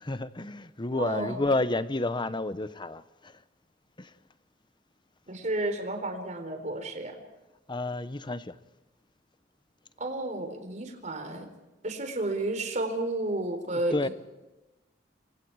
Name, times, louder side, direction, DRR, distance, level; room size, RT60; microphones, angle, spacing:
voice 1, 0.0-3.4 4.0-4.1 7.7-8.6 13.9-14.1, left 2 dB, 25° left, 0.9 m, -30 dB
voice 2, 1.0-1.4 5.3-7.2 10.0-11.5 11.8-14.1, right 2 dB, 40° right, 4.1 m, -32 dB
30.0 x 24.0 x 4.8 m
head